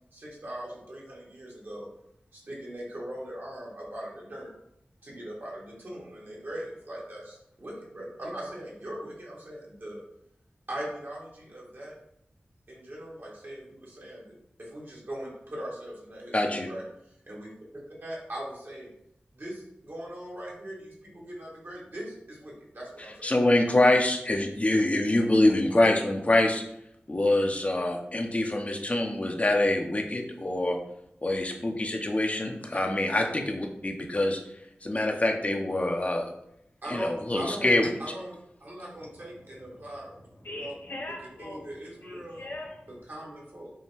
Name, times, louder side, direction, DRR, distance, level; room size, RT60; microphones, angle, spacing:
voice 1, 0.1-1.9 2.3-4.5 5.0-10.0 10.7-11.9 12.7-14.3 14.6-16.4 16.6-16.8 17.3-17.5 18.0-18.9 19.3-23.3 32.7-32.8 36.8-37.7 38.0-40.1 40.6-40.7 41.4-42.5 43.0-43.7, right 1 dB, 60° right, -4 dB, 1.5 m, -40 dB
voice 2, 16.3-16.7 23.2-26.6 27.1-30.8 31.2-34.4 34.8-36.3 36.9-37.9, left 1 dB, 35° left, 2 dB, 0.6 m, -25 dB
voice 3, 40.2-41.7 42.0-43.0, left 1 dB, 60° left, 0 dB, 1.1 m, -41 dB
5.3 x 2.1 x 3.3 m, 0.79 s
cardioid pair, 40°, 4 cm